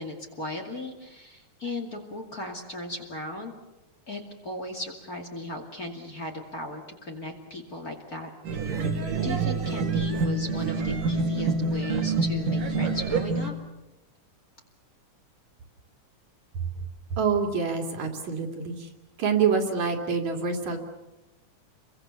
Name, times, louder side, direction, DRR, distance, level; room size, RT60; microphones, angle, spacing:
voice 1, 0.0-3.5 4.1-8.3 9.2-13.5, left 2 dB, 30° left, 2 dB, 2.7 m, -37 dB
sound 1, 8.4-13.5, right 4 dB, 85° right, 4.0 m, -27 dB
voice 2, 17.2-18.9 19.2-20.8, right 6 dB, 60° right, 3 dB, 3.7 m, -26 dB
29.5 x 23.0 x 7.0 m, 0.99 s
omnidirectional pair, 3.7 m